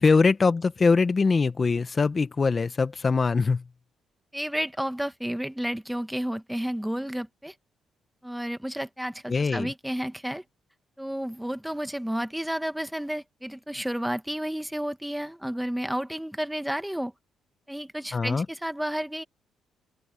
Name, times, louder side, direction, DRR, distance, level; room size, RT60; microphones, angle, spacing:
voice 1, 0.0-3.7 9.3-9.7 18.1-18.5, left 4 dB, 35° left, 1.0 m, -22 dB
voice 2, 4.3-7.5 8.2-10.4 11.0-17.1 17.7-19.2, equal, 5° right, 1.3 m, -31 dB
open air
cardioid pair, 90°, 0 cm